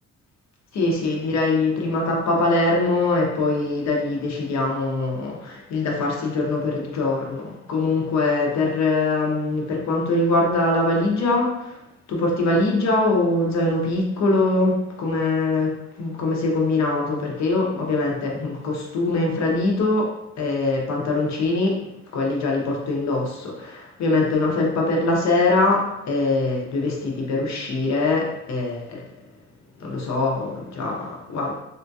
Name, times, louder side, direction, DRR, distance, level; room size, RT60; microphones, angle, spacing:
voice 1, 0.7-11.7 12.1-20.1 20.4-21.8 22.1-29.0 29.8-31.6, left 2 dB, 65° left, -1 dB, 0.9 m, -23 dB
3.6 x 2.3 x 2.7 m, 0.88 s
cardioid pair, 90°, 30 cm